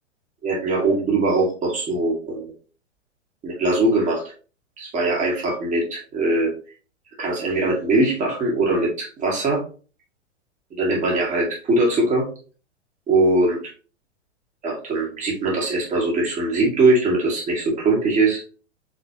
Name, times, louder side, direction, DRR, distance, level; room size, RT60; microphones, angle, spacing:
voice 1, 0.4-2.5 3.4-4.2 4.8-6.5 7.2-9.6 10.7-12.3 13.1-13.6 14.6-18.4, right 2 dB, 20° right, -3 dB, 1.9 m, -21 dB
4.8 x 3.8 x 2.8 m, 0.37 s
figure-of-eight pair, 105°, 36 cm